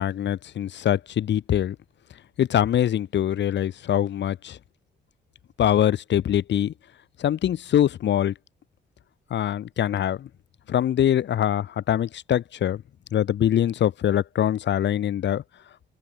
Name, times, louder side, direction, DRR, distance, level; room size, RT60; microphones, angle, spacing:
voice 1, 0.0-1.8 2.4-4.6 5.6-6.7 7.2-8.3 9.3-10.3 10.7-12.8 13.1-15.4, left 10 dB, 65° left, 1.8 m, -23 dB
open air
cardioid pair, 90°, 20 cm